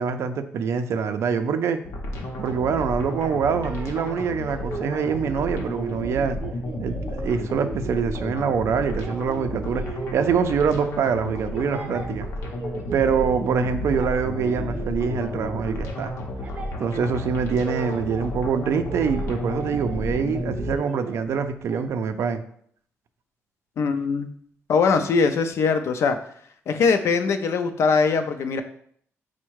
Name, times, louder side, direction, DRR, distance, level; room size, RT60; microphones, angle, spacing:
voice 1, 0.0-1.8 2.4-6.4 6.8-9.8 10.1-12.3 12.9-16.2 16.8-22.4, right 6 dB, 65° right, 9 dB, 0.4 m, -25 dB
sound 1, 1.8-20.8, left 1 dB, 90° left, 0.8 m, -32 dB
sound 2, 3.4-11.0 11.4-13.6 13.9-18.3 18.6-20.0 20.3-21.9, right 4 dB, 35° right, 0.6 m, -38 dB
voice 2, 23.8-24.3 24.7-26.2 26.7-28.6, left 5 dB, 65° left, 8 dB, 0.4 m, -21 dB
4.5 x 2.1 x 4.5 m, 0.63 s
cardioid pair, 130°, 5 cm